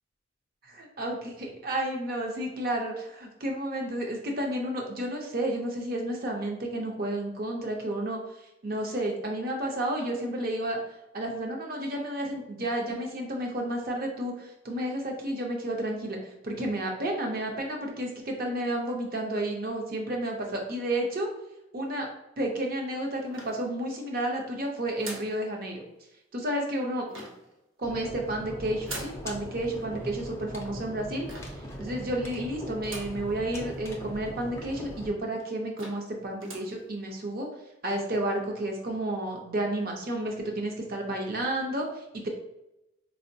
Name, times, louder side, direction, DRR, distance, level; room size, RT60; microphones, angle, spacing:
voice 1, 1.0-10.8 11.1-21.3 21.7-22.1 22.4-25.7 26.3-27.1 27.8-37.5 37.8-42.3, right 1 dB, 45° right, 1 dB, 0.6 m, -31 dB
sound 1, 23.3-24.1 25.0-25.4 27.1-27.5 28.8-29.3 31.3-31.7 32.8-33.3 33.7-33.8 34.0-34.1 34.9-35.0 35.4-35.5 35.8-36.1 36.4-36.8, right 2 dB, 75° right, 0.9 m, -42 dB
sound 2, 27.8-35.1, equal, 15° left, 0.3 m, -40 dB
4.3 x 2.1 x 2.6 m, 0.91 s
head